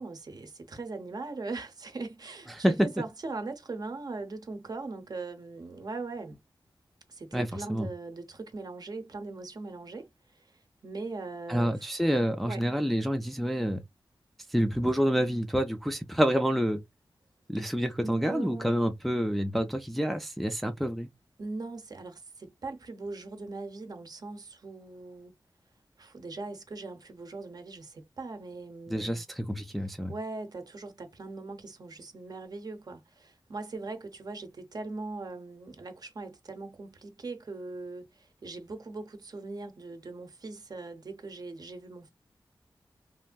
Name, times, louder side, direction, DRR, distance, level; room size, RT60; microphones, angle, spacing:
voice 1, 0.0-6.4 7.1-12.0 12.4-12.6 18.0-18.7 21.4-25.3 26.0-29.3 29.8-42.1, right 3 dB, 50° right, 0.7 m, -40 dB
voice 2, 2.6-2.9 7.3-7.9 11.5-13.8 14.5-16.8 17.5-21.1 28.9-30.1, equal, ahead, 0.4 m, -28 dB
3.1 x 2.5 x 2.2 m
wide cardioid pair, 125°, 8 cm